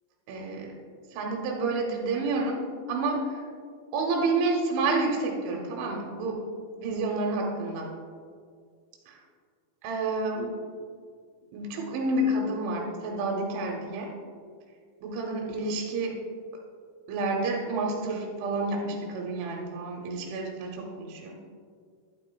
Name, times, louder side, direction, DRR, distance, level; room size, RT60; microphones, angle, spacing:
voice 1, 0.3-0.7 1.1-3.3 3.9-6.4 6.8-7.9 9.8-10.6 11.5-14.1 15.0-16.2 17.1-21.4, right 2 dB, 90° right, 0 dB, 3.3 m, -29 dB
11.0 x 8.9 x 2.2 m, 2.1 s
omnidirectional pair, 5.3 m